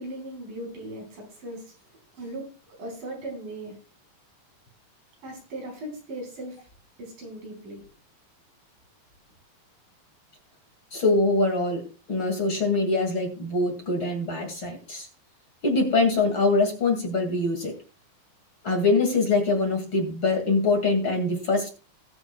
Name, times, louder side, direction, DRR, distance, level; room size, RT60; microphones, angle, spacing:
voice 1, 0.0-2.5 2.8-3.8 5.2-6.6 7.0-7.8, right 1 dB, 85° right, 0 dB, 6.2 m, -38 dB
voice 2, 10.9-15.1 15.6-17.7 18.6-21.7, left 3 dB, 40° left, 3 dB, 2.7 m, -24 dB
20.0 x 7.2 x 2.3 m, 0.35 s
omnidirectional pair, 3.8 m